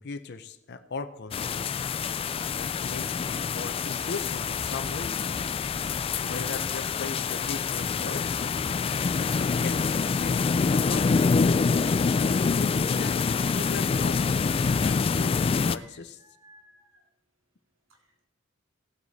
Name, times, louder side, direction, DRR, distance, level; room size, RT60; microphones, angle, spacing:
voice 1, 0.0-1.8 2.6-5.3 6.2-8.5 9.1-10.5 10.7-11.7 12.5-16.2, left 4 dB, 55° left, 8 dB, 0.6 m, -39 dB
sound 1, 1.3-15.8, left 5 dB, 30° left, 0.3 m, -26 dB
voice 2, 15.5-16.9, right 1 dB, 80° right, 1 dB, 2.4 m, -56 dB
16.0 x 7.8 x 4.1 m, 0.84 s
head